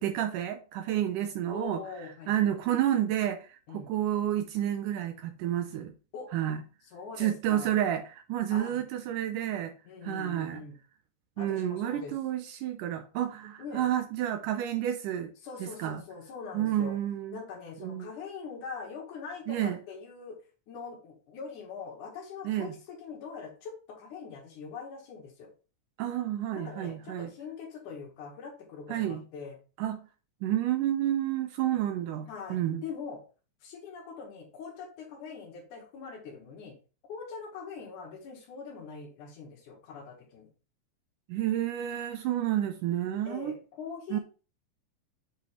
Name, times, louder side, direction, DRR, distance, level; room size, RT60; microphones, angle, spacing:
voice 1, 0.0-1.8 2.3-5.9 6.3-6.6 7.2-9.7 10.0-10.6 11.4-15.3 15.6-16.0 16.5-17.4 17.8-18.1 19.5-19.8 22.4-22.7 26.0-27.3 28.9-29.2 29.8-30.0 30.4-32.8 41.3-43.5 44.1-44.2, right 11 dB, 80° right, 2.1 m, -30 dB
voice 2, 1.5-2.3 3.7-3.9 6.1-6.3 6.9-7.8 8.5-8.8 9.9-10.8 11.4-12.1 13.6-13.9 15.4-17.0 17.3-20.4 20.7-25.5 26.5-29.6 32.3-33.2 33.6-36.8 37.1-40.5 43.3-44.2, left 5 dB, 65° left, 2.7 m, -42 dB
7.6 x 5.3 x 3.1 m
omnidirectional pair, 4.1 m